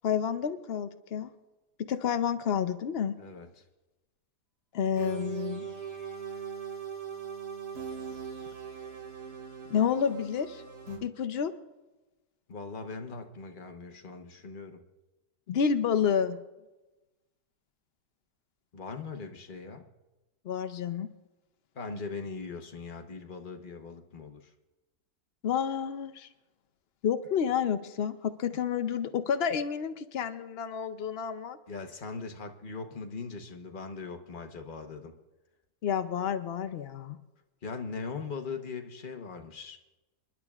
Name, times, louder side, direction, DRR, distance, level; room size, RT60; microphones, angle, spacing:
voice 1, 0.0-1.3 1.9-3.1 4.7-5.7 9.7-10.6 11.0-11.5 15.5-16.4 20.5-21.1 25.4-26.3 27.0-31.6 35.8-37.2, left 7 dB, 90° left, 9 dB, 0.5 m, -29 dB
voice 2, 3.2-3.6 12.5-14.8 18.7-19.9 21.7-24.5 31.7-35.2 37.6-39.8, left 4 dB, 35° left, 5 dB, 0.9 m, -40 dB
sound 1, 5.0-11.0, right 6 dB, 60° right, 4.0 m, -40 dB
30.0 x 11.0 x 2.4 m, 1.1 s
omnidirectional pair, 1.9 m